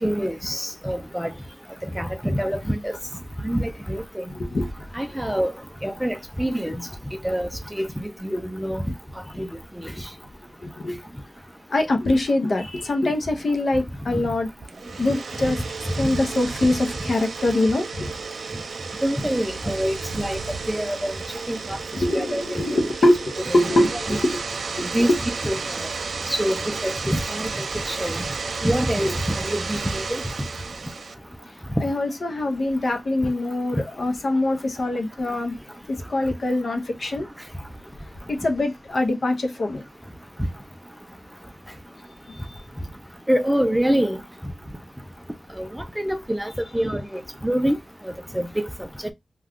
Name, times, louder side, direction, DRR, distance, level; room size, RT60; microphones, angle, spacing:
voice 1, 0.0-1.3 2.0-3.0 3.4-4.2 4.9-5.5 5.8-6.8 7.2-8.8 9.4-9.5 19.0-21.1 21.5-21.8 22.1-22.4 23.5-23.6 24.1-24.2 24.9-25.1 25.4-25.9 26.3-28.2 28.6-30.2 43.3-44.2 45.6-47.8 48.3-48.5 49.0-49.1, equal, 5° right, 0.4 m, -25 dB
voice 2, 4.3-4.7 10.6-11.0 11.7-14.5 15.0-18.1 21.9-24.4 24.7-25.2 31.8-35.6 35.9-37.3 38.3-39.8 42.5-42.6, left 1 dB, 55° left, 0.7 m, -23 dB
sound 1, 14.6-31.1, right 4 dB, 70° right, 0.3 m, -32 dB
2.3 x 2.3 x 3.5 m
cardioid pair, 70°, 0 cm